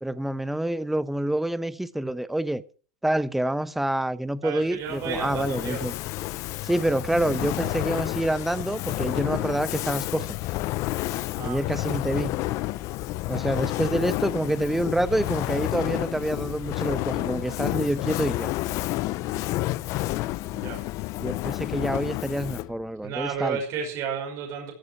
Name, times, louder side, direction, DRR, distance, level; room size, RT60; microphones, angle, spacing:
voice 1, 0.0-2.6 3.0-5.9 6.6-10.3 11.4-12.3 13.3-18.5 21.2-23.6, right 1 dB, 5° right, 0.8 m, -27 dB
voice 2, 4.4-5.8 11.4-11.6 20.5-20.8 23.0-24.7, right 6 dB, 45° right, 5.7 m, -32 dB
Fire, 4.9-22.8, left 18 dB, 50° left, 0.6 m, -30 dB
14.0 x 13.5 x 4.5 m
cardioid pair, 160°, 7 cm